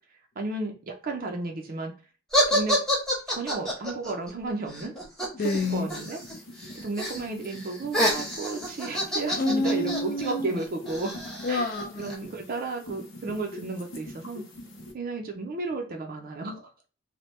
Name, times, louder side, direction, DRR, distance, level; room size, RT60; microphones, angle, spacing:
voice 1, 0.4-1.9 2.5-2.8 3.3-4.9 5.7-6.2 6.7-11.2 11.5-11.6 12.0-14.4 14.9-16.7, right 3 dB, 45° right, 0.5 m, -33 dB
sound 1, 2.3-6.3 6.6-7.2 7.5-12.1, equal, 5° left, 0.9 m, -28 dB
voice 2, 5.3-5.9 9.4-10.6 11.4-12.2, left 2 dB, 45° left, 0.3 m, -28 dB
sound 2, 5.4-14.9, left 1 dB, 65° left, 0.8 m, -45 dB
2.8 x 2.1 x 3.1 m
head